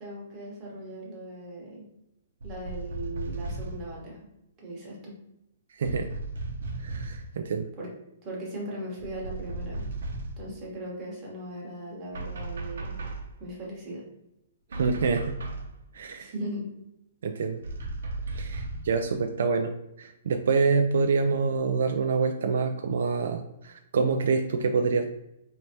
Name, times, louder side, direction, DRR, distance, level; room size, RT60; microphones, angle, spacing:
voice 1, 0.0-1.9 2.4-4.3 4.6-5.1 7.8-7.9 8.2-9.8 10.4-13.0 13.4-14.0 16.1-16.7, right 1 dB, 15° right, -4 dB, 1.0 m, -38 dB
sound 1, 2.4-3.9 5.8-7.3 9.0-10.5 12.1-13.4 14.7-15.7 17.6-18.9, right 2 dB, 80° right, 0.8 m, -35 dB
voice 2, 5.8-6.1 6.8-7.7 14.7-15.4 15.9-16.3 17.2-17.6 18.3-19.7 20.0-25.0, right 4 dB, 60° right, 6 dB, 0.3 m, -26 dB
4.4 x 3.2 x 2.8 m, 0.86 s
hypercardioid pair, 180°, 0 cm